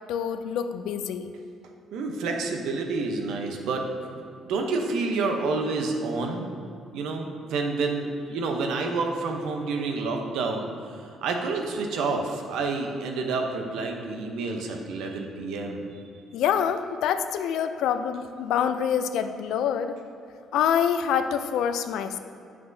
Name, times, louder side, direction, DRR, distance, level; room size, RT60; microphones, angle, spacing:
voice 1, 0.1-1.3 16.3-20.0 20.5-22.2, left 8 dB, 80° left, 9 dB, 0.3 m, -26 dB
voice 2, 1.9-6.5 6.9-16.0, right 3 dB, 80° right, 3 dB, 0.7 m, -29 dB
7.5 x 5.9 x 2.7 m, 2.5 s
cardioid pair, 115°, 0 cm